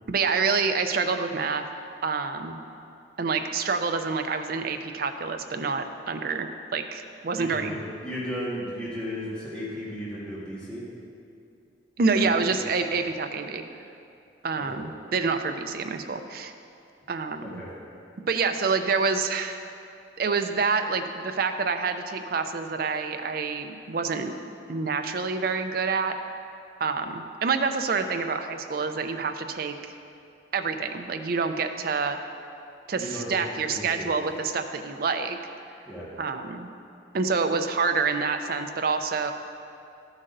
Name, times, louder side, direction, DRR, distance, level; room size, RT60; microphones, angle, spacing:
voice 1, 0.1-1.6 2.0-2.6 3.2-7.8 12.0-13.6 14.4-16.5 17.1-17.6 18.3-19.6 20.2-24.3 24.7-26.1 26.8-29.7 30.5-32.2 32.9-35.4 36.2-36.7 37.1-39.3, right 4 dB, 55° right, 7 dB, 0.5 m, -27 dB
voice 2, 7.3-10.8 12.1-12.6 14.6-14.8 17.4-17.7 33.0-33.4 33.7-34.1 35.9-36.1, equal, 5° left, -9 dB, 1.5 m, -35 dB
13.0 x 8.0 x 2.6 m, 2.6 s
head